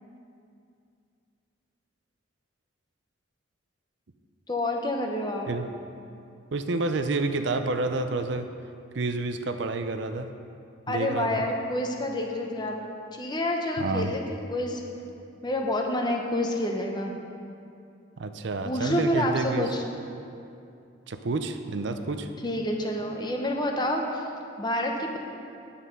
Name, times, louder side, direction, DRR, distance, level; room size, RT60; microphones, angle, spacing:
voice 1, 4.5-5.5 10.9-12.8 13.1-14.8 15.4-17.1 18.6-19.8 22.4-24.3 24.6-25.2, left 1 dB, 20° left, 2 dB, 0.9 m, -28 dB
voice 2, 6.5-8.5 8.9-10.3 10.9-11.4 13.8-14.1 18.2-19.7 21.1-22.3, right 3 dB, 65° right, 8 dB, 0.5 m, -29 dB
9.9 x 8.4 x 5.4 m, 2.5 s
head